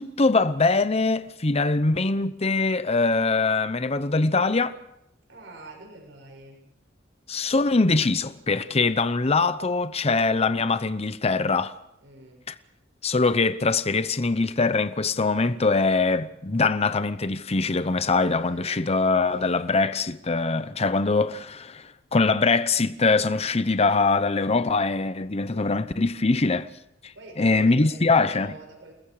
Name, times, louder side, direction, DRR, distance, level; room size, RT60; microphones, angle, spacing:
voice 1, 0.0-4.7 7.3-11.7 13.0-26.7 27.0-27.1 27.4-28.5, left 3 dB, 35° left, 0.8 m, -23 dB
voice 2, 5.3-6.6 12.0-12.4 18.3-19.0 19.2-19.6 27.1-28.9, right 2 dB, 70° right, 6.9 m, -46 dB
29.0 x 20.0 x 4.9 m
head